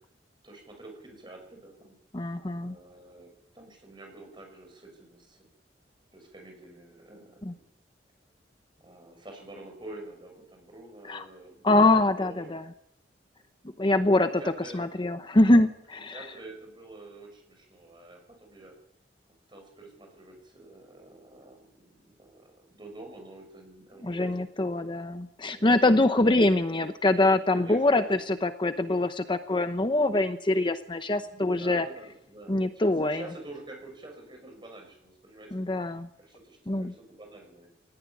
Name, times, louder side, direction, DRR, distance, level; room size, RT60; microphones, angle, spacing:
voice 1, 0.4-2.0 2.5-5.4 6.1-7.6 8.8-12.5 13.9-14.8 15.9-18.7 19.5-24.5 25.5-25.7 26.0-26.1 27.5-28.2 31.2-35.6 35.9-37.7, right 2 dB, 25° right, 3 dB, 5.8 m, -48 dB
voice 2, 2.1-2.8 7.5-7.6 11.1-11.2 11.6-12.6 13.8-14.4 14.7-16.2 24.0-31.9 32.5-33.2 35.5-36.1 36.7-36.9, left 2 dB, 25° left, 9 dB, 0.8 m, -24 dB
20.0 x 17.5 x 9.9 m, 0.84 s
head